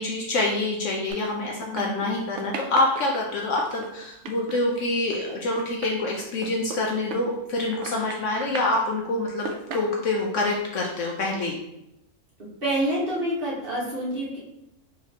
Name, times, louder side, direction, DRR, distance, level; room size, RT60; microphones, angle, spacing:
voice 1, 0.0-9.5 9.7-11.6, left 2 dB, 65° left, -1 dB, 0.9 m, -26 dB
sound 1, 1.1-2.1 2.4-7.6 7.8-8.8 9.3-10.4, right 4 dB, 65° right, 0.7 m, -37 dB
voice 2, 1.6-2.1 12.6-14.4, right 1 dB, 40° right, -7 dB, 1.4 m, -28 dB
5.0 x 3.1 x 2.8 m, 0.85 s
omnidirectional pair, 1.6 m